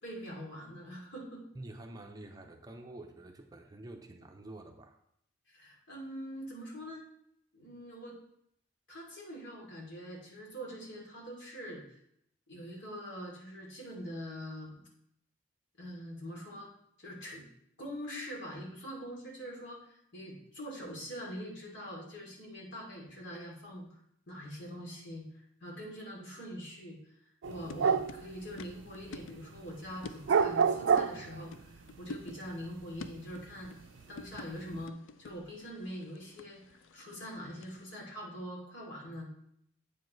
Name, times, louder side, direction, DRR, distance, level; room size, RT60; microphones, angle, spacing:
voice 1, 0.0-1.4 5.5-7.0 7.5-8.2 8.9-12.0 12.5-14.9 15.8-16.7 17.0-17.4 17.8-23.9 24.3-25.2 25.6-27.0 27.5-33.7 34.1-39.3, equal, 70° left, -2 dB, 2.8 m, -44 dB
voice 2, 1.5-5.0, right 2 dB, 20° right, 4 dB, 0.6 m, -48 dB
sound 1, 27.4-29.3 29.6-31.6 32.0-33.7 34.0-34.8, right 6 dB, 80° right, 0.4 m, -28 dB
sound 2, 27.5-38.0, left 3 dB, 85° left, 0.4 m, -50 dB
8.5 x 7.0 x 3.2 m, 0.71 s
head